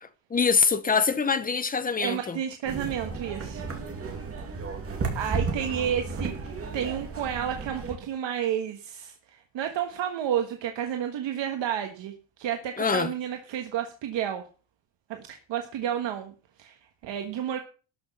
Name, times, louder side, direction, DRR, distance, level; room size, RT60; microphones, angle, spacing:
voice 1, 0.0-2.4 12.8-13.1, left 5 dB, 20° left, 0.8 m, -24 dB
voice 2, 2.0-3.7 5.1-14.4 15.1-16.8 17.0-17.6, right 9 dB, 70° right, 1.5 m, -31 dB
sound 1, 2.7-8.0, right 4 dB, 30° right, 2.4 m, -33 dB
12.5 x 6.2 x 7.1 m
cardioid pair, 180°, 45 cm